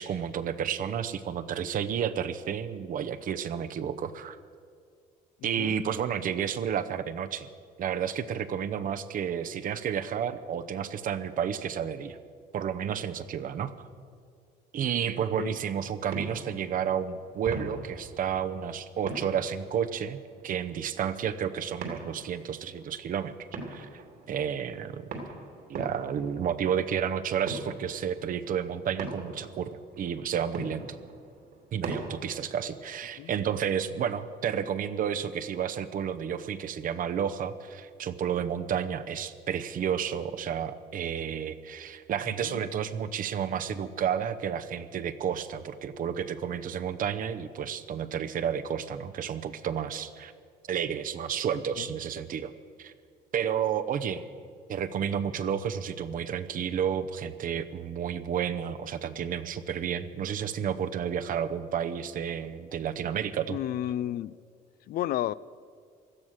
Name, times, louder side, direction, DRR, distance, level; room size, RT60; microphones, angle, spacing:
voice 1, 0.0-4.4 5.4-7.5 7.8-12.2 12.5-13.7 14.7-24.0 24.3-25.0 25.7-29.7 30.0-31.0 31.7-50.3 50.7-52.5 52.8-52.9 53.3-54.2 54.7-63.6, right 8 dB, 55° right, 11 dB, 0.8 m, -31 dB
voice 2, 5.4-5.8 15.4-15.6 33.2-33.3 42.4-42.6 51.8-51.9 63.5-64.4 64.9-65.3, left 12 dB, 60° left, 19 dB, 0.4 m, -32 dB
sound 1, 15.0-32.5, right 3 dB, 70° right, 2.8 m, -43 dB
16.5 x 12.5 x 6.4 m, 2.2 s
cardioid pair, 110°, 17 cm